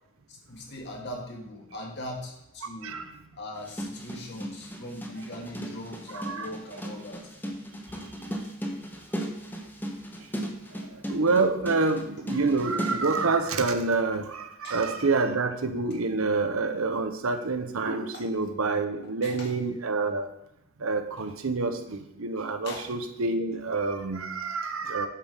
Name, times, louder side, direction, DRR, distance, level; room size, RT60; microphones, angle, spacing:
voice 1, 0.3-3.0 3.3-7.5 7.9-8.0 10.1-10.2 14.6-14.8 18.1-18.2 19.2-19.5 22.6-22.9, left 1 dB, 50° left, 0 dB, 1.7 m, -40 dB
sound 1, 3.5-13.3, equal, 10° left, 0.9 m, -36 dB
voice 2, 6.1-6.5 10.8-20.3 20.8-25.1, right 3 dB, 75° right, 8 dB, 0.8 m, -27 dB
8.5 x 3.5 x 6.3 m, 0.84 s
head